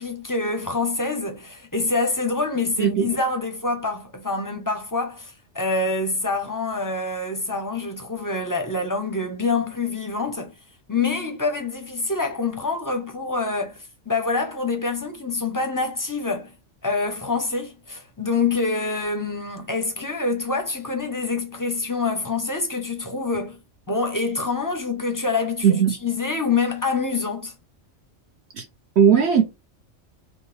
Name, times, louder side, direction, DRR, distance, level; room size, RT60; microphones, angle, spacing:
voice 1, 0.0-10.5 10.9-16.5 16.8-23.6 23.9-27.5, left 3 dB, 20° left, 0.6 m, -26 dB
voice 2, 2.8-3.1 25.6-25.9 28.5-28.7 29.0-29.4, right 7 dB, 60° right, 1.0 m, -17 dB
5.8 x 2.2 x 3.3 m
omnidirectional pair, 1.3 m